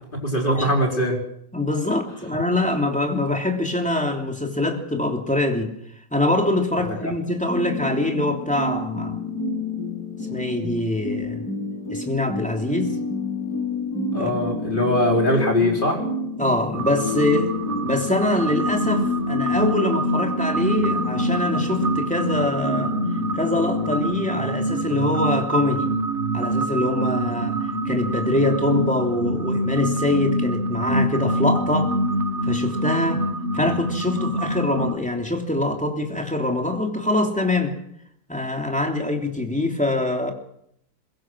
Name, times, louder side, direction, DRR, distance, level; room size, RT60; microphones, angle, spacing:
voice 1, 0.2-1.2 6.8-7.1 14.1-16.0, left 1 dB, 30° left, 1 dB, 4.9 m, -21 dB
voice 2, 1.5-5.7 6.1-9.2 10.3-11.4 11.9-13.0 14.1-14.3 16.4-17.5 17.8-23.0 23.3-25.9 26.3-31.9 32.5-33.2 33.5-37.7 38.3-40.3, left 2 dB, 5° left, 3 dB, 3.0 m, -24 dB
sound 1, 7.5-24.0, left 3 dB, 70° left, 6.3 m, -29 dB
sound 2, 16.7-34.9, right 1 dB, 40° right, 1.8 m, -25 dB
22.5 x 22.0 x 6.3 m, 0.72 s
omnidirectional pair, 1.8 m